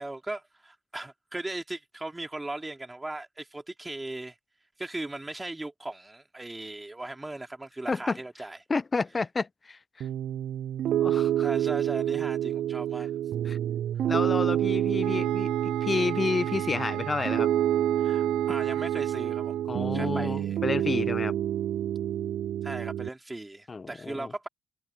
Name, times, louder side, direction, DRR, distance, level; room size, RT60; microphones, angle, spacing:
voice 1, 0.0-4.4 4.8-8.6 11.4-13.1 18.0-20.6 22.6-24.5, right 2 dB, 15° right, 3.3 m, -38 dB
voice 2, 8.7-9.8 11.0-11.5 13.5-13.6 14.1-15.5 15.8-17.5 19.7-21.3 23.7-24.3, left 4 dB, 30° left, 0.7 m, -30 dB
Piano, 10.0-23.1, right 11 dB, 65° right, 0.3 m, -28 dB
sound 1, 15.0-19.7, right 15 dB, 85° right, 2.1 m, -38 dB
supercardioid pair, 75°, 0 cm